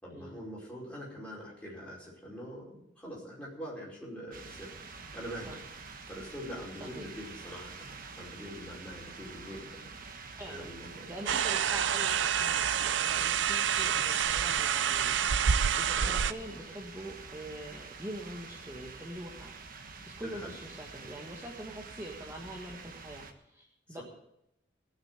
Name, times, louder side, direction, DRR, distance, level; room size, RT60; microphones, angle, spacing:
voice 1, 0.0-5.6 6.1-7.9 8.1-9.9 10.5-11.1 16.0-16.1 20.2-20.5 23.9-24.0, equal, 5° left, -5 dB, 5.0 m, -44 dB
sound 1, 4.3-23.3, right 4 dB, 45° right, 1.3 m, -47 dB
voice 2, 10.4-10.7 11.1-15.2 15.7-24.0, right 1 dB, 15° right, -1 dB, 1.5 m, -44 dB
sound 2, 11.3-16.3, right 8 dB, 65° right, 0.5 m, -28 dB
18.5 x 6.7 x 8.1 m, 0.80 s
head